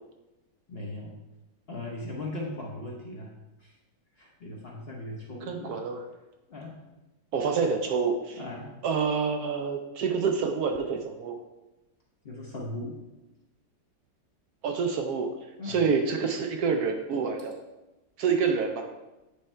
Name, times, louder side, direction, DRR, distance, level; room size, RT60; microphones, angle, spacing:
voice 1, 0.7-1.2 1.7-3.3 3.6-3.8 4.2-5.8 6.5-6.8 8.3-8.7 12.2-13.0 15.6-15.9, left 2 dB, 45° left, -2 dB, 0.9 m, -38 dB
voice 2, 5.5-6.0 7.3-8.4 8.8-11.4 14.6-15.3 15.7-17.6 18.2-18.9, right 5 dB, 70° right, 4 dB, 1.0 m, -27 dB
8.8 x 3.3 x 4.3 m, 1.0 s
omnidirectional pair, 1.9 m